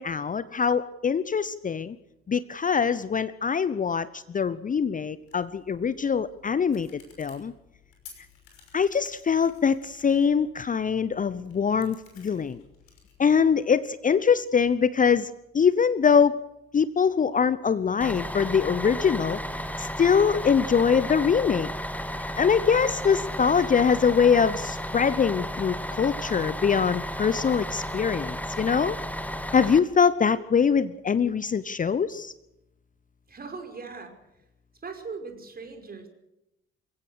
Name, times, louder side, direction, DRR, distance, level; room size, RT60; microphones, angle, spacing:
voice 1, 0.0-2.0 2.3-7.5 8.7-12.6 13.2-16.4 16.7-19.4 19.8-21.7 22.4-29.0 29.5-32.3, left 6 dB, 25° left, 16 dB, 0.9 m, -23 dB
sound 1, 5.2-13.5, left 7 dB, 70° left, 6.1 m, -55 dB
Bus, 18.0-29.8, equal, 5° left, 1.9 m, -33 dB
voice 2, 33.3-34.4 34.8-36.1, right 4 dB, 30° right, 5 dB, 5.6 m, -40 dB
28.5 x 16.0 x 6.6 m, 0.90 s
figure-of-eight pair, 50°, 30 cm